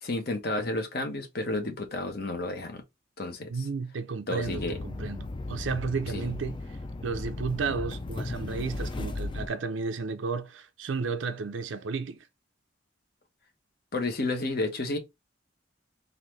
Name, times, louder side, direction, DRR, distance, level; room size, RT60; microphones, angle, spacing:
voice 1, 0.0-2.8 3.2-3.7 4.3-4.8 6.1-6.3 13.9-15.0, left 2 dB, 55° left, 1.0 m, -31 dB
voice 2, 3.5-6.8 7.0-12.3, right 4 dB, 85° right, 0.5 m, -33 dB
sound 1, 4.4-9.5, left 2 dB, 25° left, 0.4 m, -36 dB
4.0 x 2.6 x 3.1 m
head